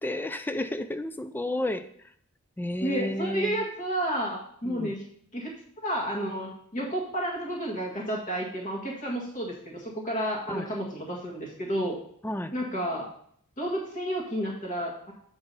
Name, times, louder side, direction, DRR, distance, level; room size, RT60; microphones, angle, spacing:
voice 1, 0.0-1.9 2.6-3.6 4.6-4.9 10.5-10.7 12.2-12.5, left 1 dB, 10° left, 11 dB, 0.4 m, -32 dB
voice 2, 2.8-5.0 5.3-12.0 12.5-13.1 13.6-15.1, right 1 dB, 35° left, -2 dB, 1.7 m, -31 dB
7.7 x 5.1 x 5.4 m, 0.64 s
head